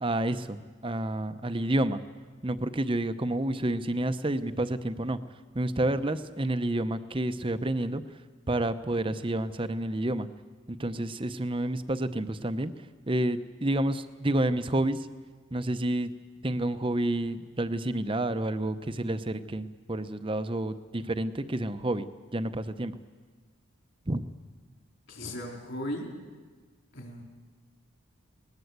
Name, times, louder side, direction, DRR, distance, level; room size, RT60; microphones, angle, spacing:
voice 1, 0.0-2.0 2.4-5.2 5.5-8.0 8.5-10.3 10.7-15.1 15.5-16.1 16.4-22.9 24.1-24.2, right 1 dB, 25° right, 11 dB, 0.7 m, -29 dB
voice 2, 25.1-26.1 26.9-27.2, left 1 dB, 55° left, 1 dB, 4.2 m, -36 dB
20.5 x 20.0 x 8.1 m, 1.5 s
head